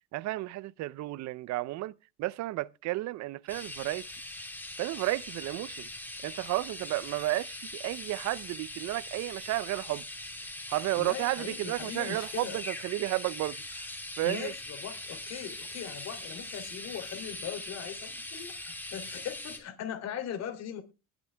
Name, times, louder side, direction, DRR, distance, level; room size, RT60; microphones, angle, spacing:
voice 1, 0.0-4.0 4.8-5.9 6.2-10.1 10.7-13.9 14.2-14.5, right 18 dB, 70° right, 0.6 m, -32 dB
sound 1, 3.5-19.6, left 1 dB, 5° left, 3.2 m, -41 dB
voice 2, 10.9-12.6 14.2-20.8, left 9 dB, 60° left, 3.0 m, -40 dB
20.5 x 8.2 x 3.4 m
cardioid pair, 105°, 29 cm